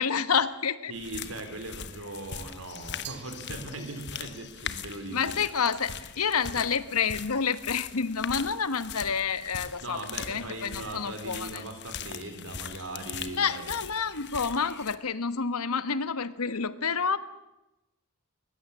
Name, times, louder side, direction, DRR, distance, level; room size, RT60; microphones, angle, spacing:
voice 1, 0.0-0.9 5.1-11.6 13.3-17.2, left 6 dB, 85° left, 14 dB, 1.2 m, -29 dB
sound 1, 0.9-15.0, left 8 dB, 50° left, 1.2 m, -41 dB
voice 2, 0.9-5.3 9.8-13.6, right 2 dB, 65° right, 7 dB, 4.2 m, -39 dB
Glass, 3.0-4.3, right 13 dB, 50° right, 1.2 m, -46 dB
22.0 x 20.5 x 7.4 m, 0.98 s
head